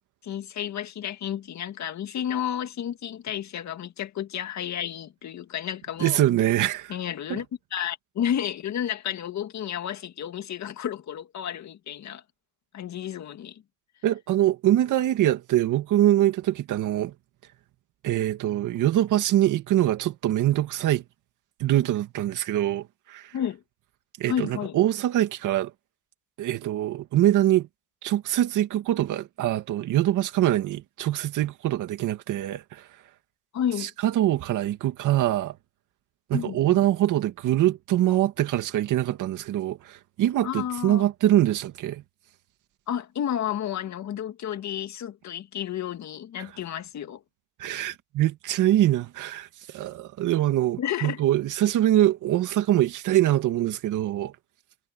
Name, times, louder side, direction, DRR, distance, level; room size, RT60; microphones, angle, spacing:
voice 1, 0.2-6.2 6.9-7.5 7.7-12.2 12.7-13.6 23.3-23.6 24.3-24.8 33.5-33.9 36.3-36.8 40.4-41.1 42.9-47.2 50.8-51.2, left 10 dB, 65° left, 2.1 m, -31 dB
voice 2, 6.0-6.9 7.3-7.4 14.0-17.1 18.0-21.0 21.6-23.3 24.2-25.7 26.4-27.7 28.0-32.8 33.8-35.5 36.3-42.0 46.4-46.5 47.6-49.5 49.7-54.3, right 13 dB, 85° right, 2.3 m, -24 dB
cardioid pair, 90°, 30 cm